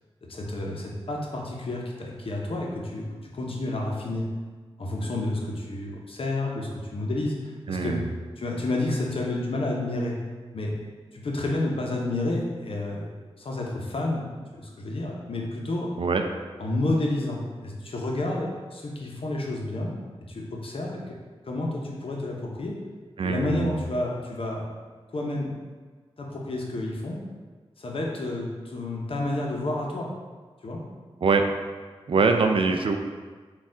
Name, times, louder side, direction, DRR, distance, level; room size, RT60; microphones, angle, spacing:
voice 1, 0.3-4.2 4.8-8.0 8.4-10.2 10.5-10.7 11.1-13.1 13.4-15.9 16.6-19.9 20.3-21.2 21.4-22.7 23.2-24.6 25.1-25.5 26.2-27.2 27.8-30.1 30.6-30.8, left 2 dB, 60° left, -1 dB, 0.7 m, -30 dB
voice 2, 7.7-8.1 16.0-16.2 23.2-23.8 31.2-31.5 32.1-33.0, right 4 dB, 60° right, 5 dB, 0.4 m, -23 dB
4.0 x 2.4 x 3.7 m, 1.4 s
cardioid pair, 60°, 10 cm